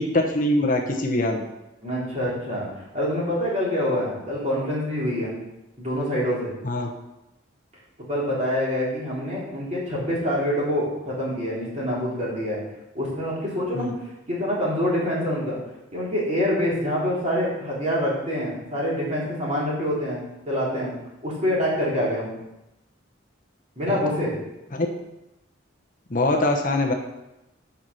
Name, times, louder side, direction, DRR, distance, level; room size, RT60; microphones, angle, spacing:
voice 1, 0.0-1.4 6.6-6.9 13.7-13.9 23.9-24.0 24.7-24.9 26.1-26.9, left 1 dB, 40° left, 1 dB, 0.9 m, -23 dB
voice 2, 1.8-2.7 2.9-5.4 5.8-6.5 8.1-12.6 12.9-13.9 14.3-15.6 15.9-20.9 21.2-22.3 23.8-24.4, equal, 35° right, -7 dB, 3.6 m, -26 dB
8.0 x 5.7 x 6.2 m, 0.92 s
head